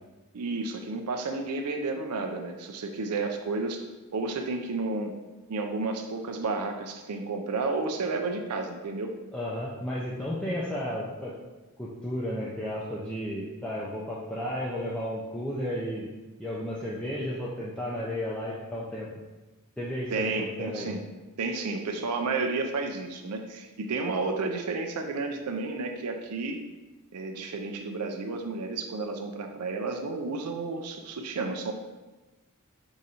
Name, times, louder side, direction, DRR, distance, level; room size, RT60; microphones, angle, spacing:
voice 1, 0.3-3.8 4.1-5.2 5.5-9.1 20.1-21.0 21.4-26.6 27.1-31.7, right 3 dB, 90° right, 5 dB, 0.5 m, -31 dB
voice 2, 9.3-11.3 11.8-16.1 16.4-19.1 19.8-20.9, equal, 5° left, -7 dB, 0.5 m, -33 dB
4.8 x 2.6 x 4.2 m, 1.1 s
head